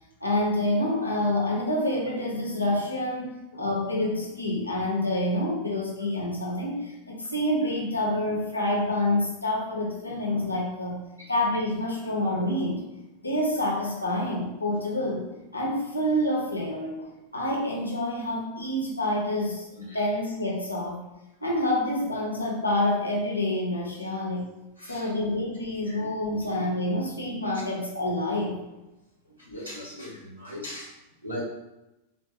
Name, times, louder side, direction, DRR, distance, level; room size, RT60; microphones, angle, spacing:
voice 1, 0.2-11.0 11.3-21.0 21.4-24.5 24.9-28.8, left 1 dB, 85° left, -2 dB, 0.6 m, -28 dB
voice 2, 29.5-30.9 31.2-31.4, left 1 dB, 85° right, -7 dB, 0.7 m, -38 dB
3.7 x 2.0 x 2.8 m, 0.97 s
figure-of-eight pair, 90°, 0 cm